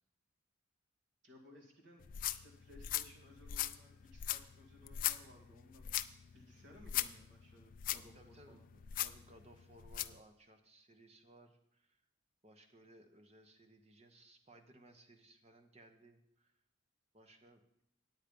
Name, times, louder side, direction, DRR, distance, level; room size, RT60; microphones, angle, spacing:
voice 1, 1.2-5.9 6.3-8.7, left 1 dB, 60° right, 0 dB, 2.3 m, -60 dB
sound 1, 2.0-10.2, left 13 dB, 45° left, 0.3 m, -41 dB
voice 2, 8.1-12.0 12.4-16.5 17.1-17.8, right 1 dB, 30° right, 6 dB, 1.0 m, -62 dB
9.2 x 9.0 x 5.3 m, 0.73 s
head